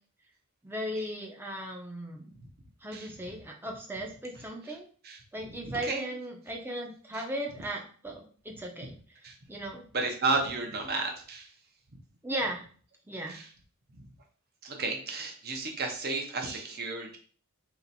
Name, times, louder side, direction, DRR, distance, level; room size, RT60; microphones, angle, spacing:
voice 1, 0.6-2.3 2.8-4.9 5.3-8.9 9.5-9.9 12.2-12.7 13.1-13.4, right 1 dB, 10° right, 1 dB, 0.6 m, -37 dB
voice 2, 4.3-4.8 5.0-6.1 7.1-7.2 8.8-8.9 9.2-9.4 9.9-11.5 11.9-12.0 13.3-13.5 14.0-14.1 14.6-17.2, right 3 dB, 45° right, 3 dB, 0.8 m, -33 dB
3.1 x 2.9 x 4.1 m, 0.43 s
head